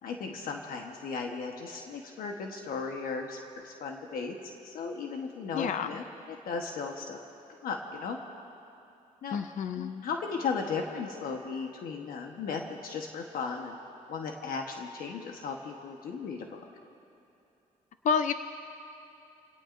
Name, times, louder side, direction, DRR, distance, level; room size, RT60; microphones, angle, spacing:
voice 1, 0.0-3.4 3.6-4.4 4.6-7.2 7.6-8.2 9.2-9.4 9.7-13.8 14.1-16.6, left 5 dB, 85° left, 2 dB, 1.2 m, -36 dB
voice 2, 5.5-5.9 9.3-10.0 18.0-18.3, left 6 dB, 60° left, 9 dB, 0.6 m, -29 dB
29.0 x 18.0 x 2.6 m, 2.8 s
cardioid pair, 115°, 15 cm